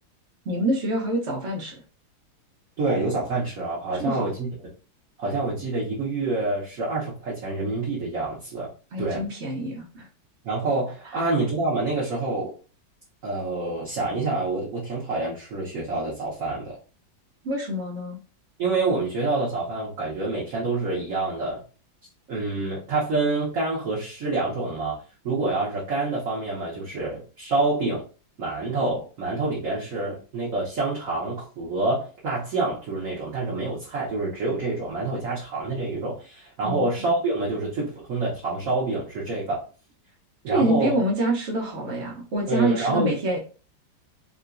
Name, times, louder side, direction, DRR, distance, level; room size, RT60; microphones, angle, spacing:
voice 1, 0.5-1.8 4.0-4.3 8.9-10.1 11.1-11.2 17.4-18.2 36.6-36.9 40.5-43.4, right 1 dB, 85° right, -1 dB, 0.6 m, -26 dB
voice 2, 2.8-4.5 5.2-8.7 9.0-9.2 10.4-12.5 13.2-16.8 18.6-21.6 22.3-25.0 25.2-28.0 28.4-39.6 40.4-40.9 42.5-43.1, right 3 dB, 55° right, -6 dB, 1.0 m, -27 dB
3.8 x 2.2 x 2.5 m, 0.37 s
omnidirectional pair, 2.1 m